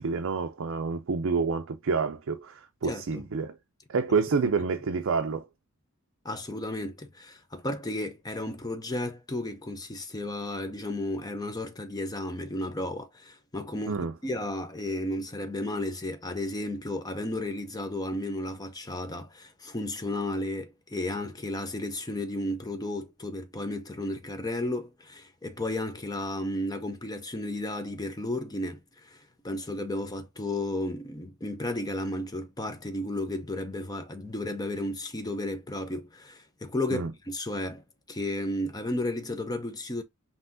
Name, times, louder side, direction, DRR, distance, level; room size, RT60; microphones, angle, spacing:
voice 1, 0.0-3.6 3.9-5.5 13.9-14.1 36.9-37.1, right 5 dB, 60° right, 0.5 m, -28 dB
voice 2, 2.8-3.2 6.2-40.0, left 1 dB, 15° left, 0.6 m, -33 dB
5.6 x 2.8 x 2.6 m
head